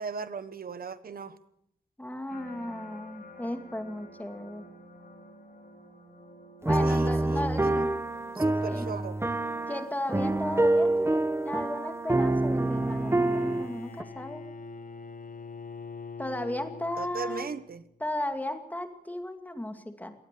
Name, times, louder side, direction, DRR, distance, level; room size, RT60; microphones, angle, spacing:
voice 1, 0.0-1.4 6.7-7.9 8.3-9.2 17.0-17.8, right 5 dB, 80° right, 14 dB, 1.2 m, -38 dB
voice 2, 2.0-4.7 6.6-7.9 8.6-8.9 9.7-14.4 16.2-17.5 18.0-20.1, left 1 dB, 10° left, 7 dB, 2.3 m, -35 dB
sound 1, 2.3-17.5 18.0-18.4, left 1 dB, 80° left, 4.8 m, -53 dB
sound 2, 6.7-14.0, right 2 dB, 15° right, 1.1 m, -26 dB
Bowed string instrument, 12.4-17.7, left 4 dB, 65° left, 1.3 m, -43 dB
22.5 x 18.0 x 6.8 m, 0.71 s
wide cardioid pair, 125°, 15 cm